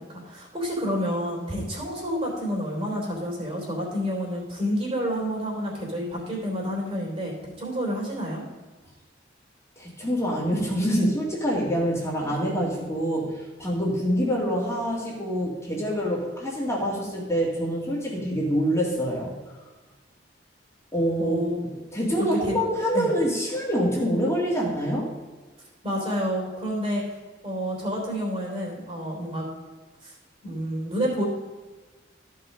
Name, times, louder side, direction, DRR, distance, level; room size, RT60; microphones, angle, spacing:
voice 1, 0.0-8.4 21.2-21.6 22.4-22.6 22.9-23.1 25.8-27.0 27.4-29.5 30.0-30.1 30.4-31.2, equal, 30° right, -2 dB, 3.4 m, -29 dB
voice 2, 9.8-19.3 20.9-21.4 21.9-25.1, equal, 15° left, -5 dB, 2.0 m, -26 dB
14.0 x 5.6 x 5.1 m, 1.3 s
head